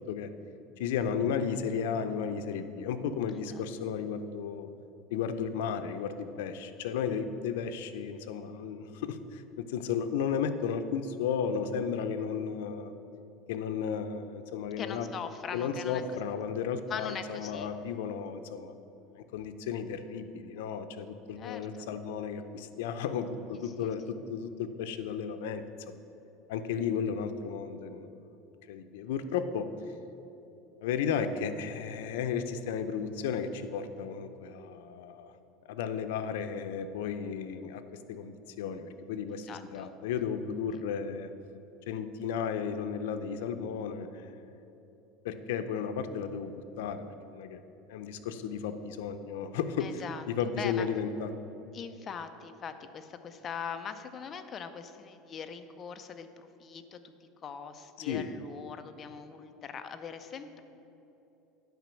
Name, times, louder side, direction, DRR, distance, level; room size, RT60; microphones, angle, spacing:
voice 1, 0.8-4.7 5.1-12.9 13.5-15.1 15.5-18.7 19.1-26.0 26.5-28.2 28.7-29.7 30.8-35.3 35.7-37.8 38.1-41.3 41.9-44.3 45.2-47.6 47.9-49.9 50.3-51.3 58.1-58.3, left 7 dB, 85° left, 9 dB, 0.6 m, -34 dB
voice 2, 14.8-16.0 16.9-17.7 21.4-21.9 23.6-23.9 39.3-39.9 40.7-40.8 49.8-50.2 50.6-50.9 51.7-57.1 57.4-60.6, left 6 dB, 25° left, 8 dB, 0.5 m, -41 dB
9.2 x 5.2 x 7.0 m, 3.0 s
cardioid pair, 155°, 0 cm